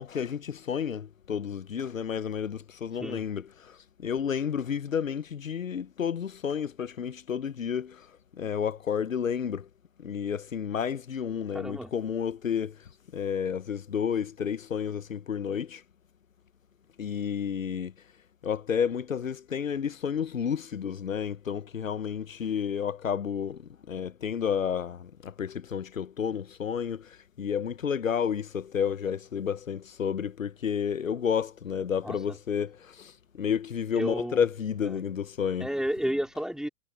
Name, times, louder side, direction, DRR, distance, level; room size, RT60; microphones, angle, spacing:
voice 1, 0.0-8.1 8.4-9.7 10.0-15.8 17.0-17.9 18.4-35.7, left 7 dB, 85° left, 1.0 m, -31 dB
voice 2, 11.5-11.9 32.0-32.2 33.9-34.4 35.6-36.7, equal, ahead, 3.7 m, -31 dB
figure-of-eight pair, 100°, 39 cm